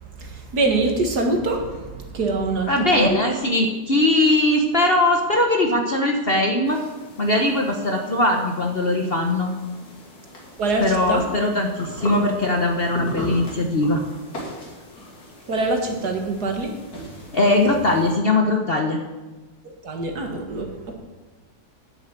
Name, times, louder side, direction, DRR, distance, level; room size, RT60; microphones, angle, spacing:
voice 1, 0.0-3.2 10.6-11.2 15.5-16.7 19.8-20.9, right 2 dB, 60° right, 3 dB, 2.2 m, -24 dB
voice 2, 2.7-6.8 7.2-9.5 10.8-14.0 17.3-19.0, left 2 dB, 40° left, 3 dB, 1.1 m, -20 dB
sound 1, 6.6-18.1, left 1 dB, 55° left, 3.3 m, -38 dB
9.6 x 7.9 x 8.9 m, 1.2 s
omnidirectional pair, 2.0 m